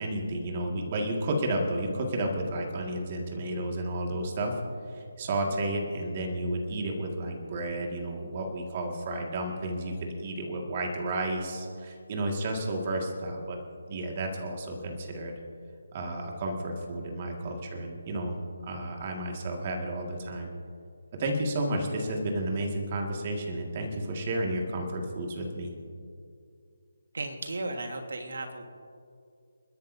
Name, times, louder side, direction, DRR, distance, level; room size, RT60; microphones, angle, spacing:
voice 1, 0.0-4.5 4.9-13.6 13.9-15.3 15.9-18.3 18.6-20.5 21.2-25.7, right 1 dB, 25° right, 1 dB, 1.9 m, -32 dB
voice 2, 27.1-28.7, right 2 dB, 65° right, 5 dB, 1.6 m, -35 dB
30.0 x 10.5 x 2.7 m, 2.4 s
hypercardioid pair, 170°, 0 cm